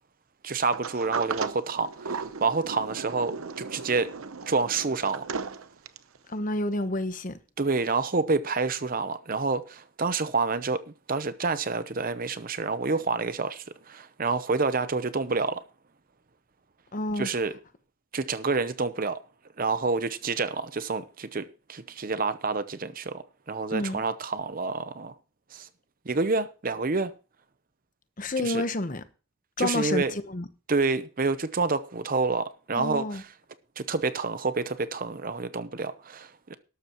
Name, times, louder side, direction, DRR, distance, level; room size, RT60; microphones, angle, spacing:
voice 1, 0.4-4.1 4.5-5.3 7.6-15.6 17.2-17.5 18.1-19.2 19.6-25.1 25.5-25.7 26.1-27.1 28.4-28.6 29.6-30.1 30.7-33.3 33.8-36.6, right 4 dB, 40° right, 0.7 m, -28 dB
Sliding door, 0.7-6.2, right 5 dB, 80° right, 0.8 m, -36 dB
voice 2, 6.3-7.4 16.9-17.3 23.7-24.0 28.2-29.0 29.6-30.4 32.7-33.2, left 2 dB, 40° left, 1.0 m, -29 dB
12.5 x 12.5 x 3.0 m
head